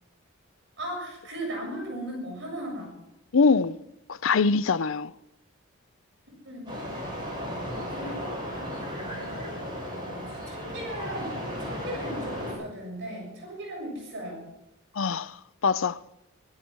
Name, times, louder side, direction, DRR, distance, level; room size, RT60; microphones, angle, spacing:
voice 1, 0.8-3.0 6.4-7.1 7.9-8.4 9.1-9.5 10.1-14.5, equal, 55° right, 7.2 m, -37 dB
voice 2, 3.3-3.8 4.1-5.1 15.0-15.4 15.6-16.0, left 4 dB, 65° left, 0.5 m, -23 dB
sound 1, 6.7-12.5, equal, 20° right, 7.3 m, -35 dB
16.5 x 13.5 x 6.3 m
head